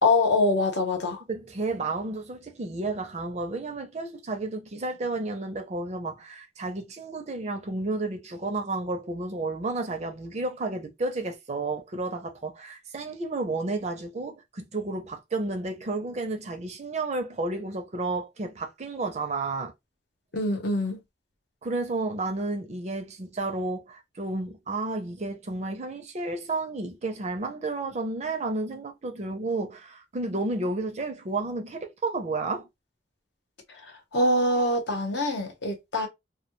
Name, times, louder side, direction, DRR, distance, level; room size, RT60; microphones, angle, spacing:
voice 1, 0.0-1.2 20.3-21.0 33.8-36.1, left 2 dB, 65° left, 0.8 m, -24 dB
voice 2, 1.3-19.7 21.6-32.7, right 2 dB, 40° right, 0.5 m, -31 dB
2.2 x 2.1 x 2.9 m
head